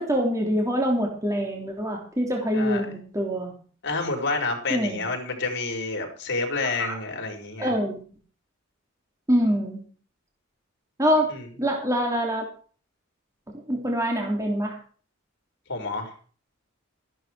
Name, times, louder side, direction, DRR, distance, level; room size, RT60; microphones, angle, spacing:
voice 1, 0.0-3.5 4.7-5.0 6.8-7.0 7.6-8.0 9.3-9.8 11.0-11.3 11.6-12.5 13.7-14.8, equal, 15° right, 0 dB, 3.0 m, -25 dB
voice 2, 2.5-2.9 3.8-7.7 11.3-11.5 15.7-16.1, left 3 dB, 60° left, 2 dB, 4.9 m, -29 dB
14.5 x 11.5 x 4.8 m, 0.42 s
head